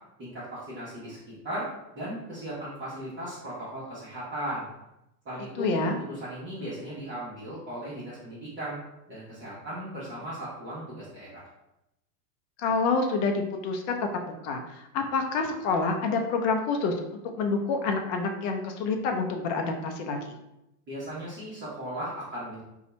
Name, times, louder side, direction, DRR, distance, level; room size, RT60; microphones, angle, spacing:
voice 1, 0.2-4.7 5.2-5.8 6.1-8.8 9.1-11.4 20.9-22.6, right 1 dB, 25° right, -10 dB, 1.0 m, -37 dB
voice 2, 5.6-6.0 12.6-14.0 14.4-16.9 17.4-20.3, left 4 dB, 50° left, 3 dB, 0.6 m, -27 dB
2.6 x 2.4 x 4.1 m, 0.89 s
hypercardioid pair, 125°, 49 cm